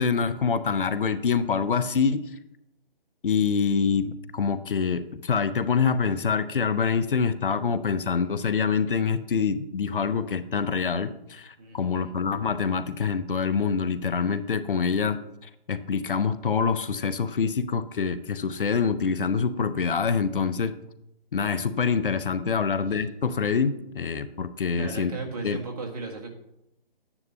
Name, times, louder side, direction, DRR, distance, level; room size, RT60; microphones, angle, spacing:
voice 1, 0.0-2.3 3.2-20.7 21.3-25.1 25.4-25.6, left 6 dB, 60° left, 13 dB, 0.7 m, -25 dB
voice 2, 11.6-12.2 22.5-23.1 24.7-26.3, right 3 dB, 40° right, 2 dB, 1.8 m, -37 dB
10.5 x 9.7 x 2.9 m, 0.83 s
figure-of-eight pair, 150°, 29 cm